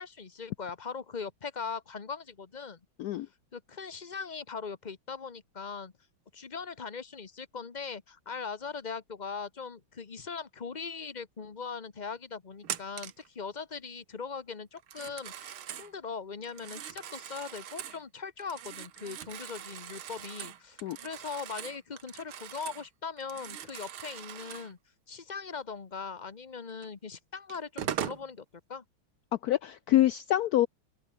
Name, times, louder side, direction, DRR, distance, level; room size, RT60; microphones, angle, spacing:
voice 1, 0.0-2.8 3.5-5.9 6.3-24.8 25.1-28.8, left 5 dB, 30° left, 1.0 m, -40 dB
Telephone, 12.6-13.3 14.8-15.9 16.4-18.0 18.4-22.9 23.2-24.7 26.8-26.9 27.5-28.3, right 10 dB, 85° right, 2.2 m, -41 dB
voice 2, 29.4-30.7, left 13 dB, 85° left, 0.8 m, -25 dB
open air
omnidirectional pair, 2.2 m